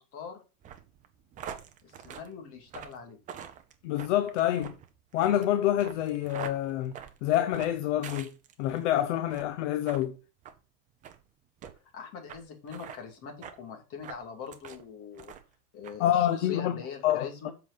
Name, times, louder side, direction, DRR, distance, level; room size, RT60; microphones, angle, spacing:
sound 1, 0.6-8.8 9.2-9.5 9.8-10.0 10.4-10.6 11.0-11.2 11.6-11.7 12.3-12.4 12.7-13.0 13.4-13.6 14.0-14.8 15.2-15.5 15.8-16.0, right 8 dB, 15° right, 0.7 m, -44 dB
voice 1, 1.8-3.2 11.9-15.3 15.7-17.5, left 6 dB, 30° left, 2.6 m, -43 dB
voice 2, 3.8-4.7 5.1-8.3 8.6-10.1 16.0-17.3, left 12 dB, 50° left, 0.8 m, -27 dB
7.8 x 5.6 x 5.1 m
supercardioid pair, 155°, 45 cm